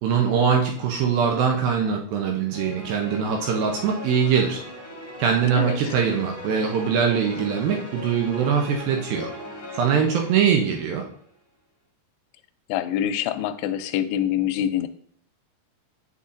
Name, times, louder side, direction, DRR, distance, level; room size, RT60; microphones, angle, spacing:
voice 1, 0.0-4.6 5.2-9.3 9.8-11.0, right 7 dB, 75° right, 1 dB, 2.2 m, -22 dB
pulse strings, 2.5-11.1, left 1 dB, 20° left, 1.6 m, -39 dB
voice 2, 5.6-6.0 12.7-14.9, left 11 dB, 90° left, 11 dB, 2.7 m, -25 dB
8.2 x 5.6 x 2.5 m, 0.62 s
omnidirectional pair, 4.8 m